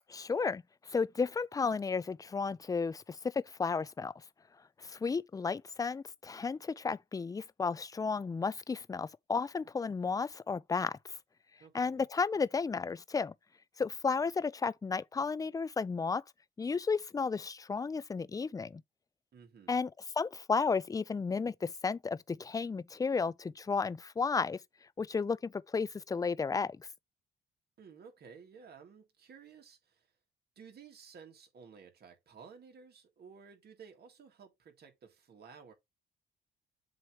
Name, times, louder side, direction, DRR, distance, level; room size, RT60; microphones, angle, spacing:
voice 1, 0.1-0.6 0.9-4.1 4.8-11.0 11.7-13.3 13.8-16.2 16.6-18.8 19.7-19.9 20.2-24.6 25.0-26.9, left 5 dB, 20° left, 0.4 m, -33 dB
voice 2, 11.6-12.1 19.3-19.7 27.8-30.1 30.6-35.7, right 6 dB, 55° right, 2.1 m, -54 dB
7.7 x 3.0 x 5.0 m
cardioid pair, 90°, 20 cm